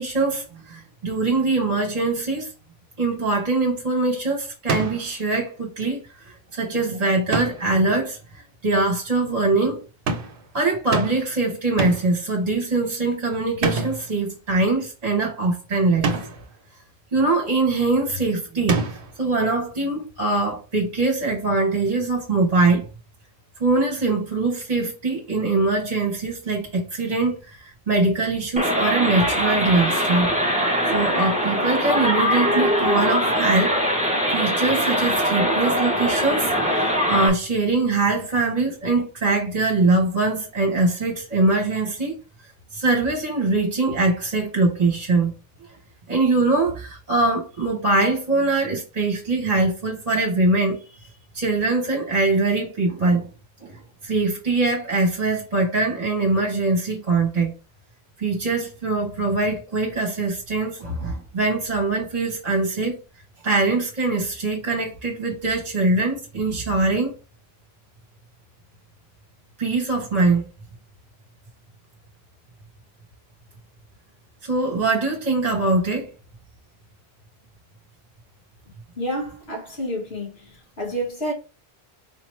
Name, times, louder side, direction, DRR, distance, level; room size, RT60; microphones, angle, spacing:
voice 1, 0.0-2.5 3.0-8.2 8.6-9.8 10.5-16.1 17.1-18.8 19.2-22.8 23.6-30.3 30.9-33.8 34.3-42.2 42.7-45.3 46.1-50.8 51.3-53.3 53.6-57.5 58.2-63.0 63.4-67.1 69.6-70.4 74.4-76.1, right 3 dB, 40° right, 1.1 m, -22 dB
sound 1, 4.7-5.1 7.3-7.7 10.1-10.4 10.9-11.3 11.8-12.2 13.6-14.1 16.0-16.5 18.7-19.2, right 3 dB, 60° right, 0.9 m, -26 dB
sound 2, 28.6-37.3, equal, 10° right, 0.7 m, -22 dB
voice 2, 79.0-81.3, equal, 75° left, 1.7 m, -29 dB
4.1 x 2.9 x 3.1 m
omnidirectional pair, 1.1 m